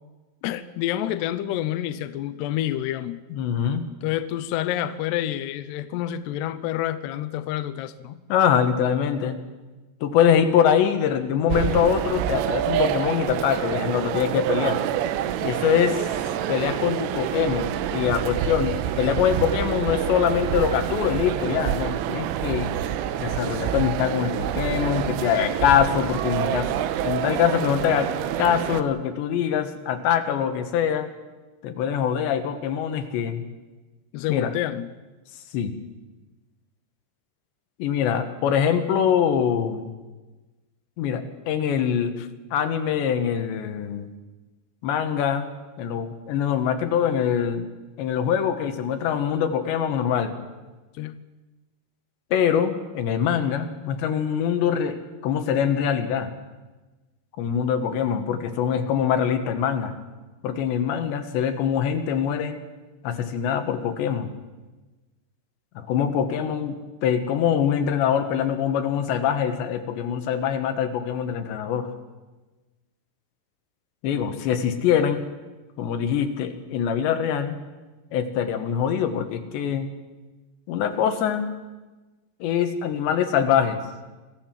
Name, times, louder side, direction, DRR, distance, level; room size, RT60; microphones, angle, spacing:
voice 1, 0.4-3.2 4.0-8.2 34.1-34.9 42.2-42.3 50.9-51.2, left 12 dB, 85° left, 10 dB, 2.4 m, -28 dB
voice 2, 3.3-3.8 8.3-9.4 10.0-14.8 15.4-16.1 16.5-22.7 23.2-26.7 27.0-28.1 28.4-31.1 31.6-33.4 34.3-34.5 35.5-35.7 37.8-39.9 41.0-42.1 42.5-44.1 44.8-45.5 45.8-47.7 48.0-50.3 52.3-56.3 57.4-59.9 60.4-62.6 63.0-64.3 65.7-71.9 74.0-75.2 75.8-77.6 78.1-79.9 80.7-81.5 82.4-83.8, left 8 dB, 70° left, 7 dB, 3.4 m, -23 dB
sound 1, 11.5-28.8, right 11 dB, 80° right, 3.3 m, -27 dB
26.5 x 15.0 x 7.5 m, 1.2 s
omnidirectional pair, 5.8 m